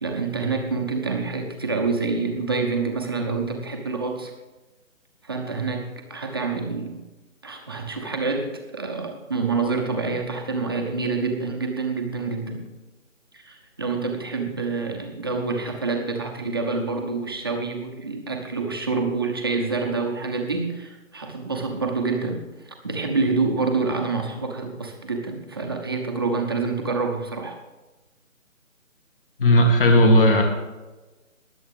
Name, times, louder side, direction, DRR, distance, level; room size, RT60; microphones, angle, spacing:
voice 1, 0.0-4.3 5.2-7.0 7.4-12.7 13.3-27.6, right 4 dB, 20° right, 1 dB, 0.9 m, -27 dB
voice 2, 29.4-30.4, left 1 dB, 40° left, 3 dB, 2.1 m, -15 dB
21.0 x 8.0 x 3.6 m, 1.1 s
figure-of-eight pair, 155°, 40 cm